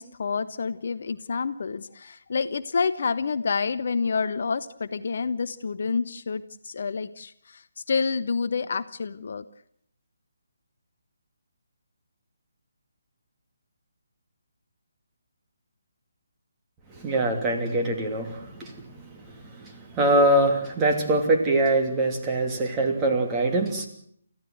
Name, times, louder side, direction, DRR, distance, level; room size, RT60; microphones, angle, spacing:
voice 1, 0.0-9.4, left 5 dB, 50° left, 13 dB, 0.8 m, -28 dB
voice 2, 16.9-23.9, right 1 dB, 15° right, 2 dB, 3.0 m, -24 dB
29.5 x 14.5 x 8.0 m, 0.67 s
figure-of-eight pair, 145°, 0 cm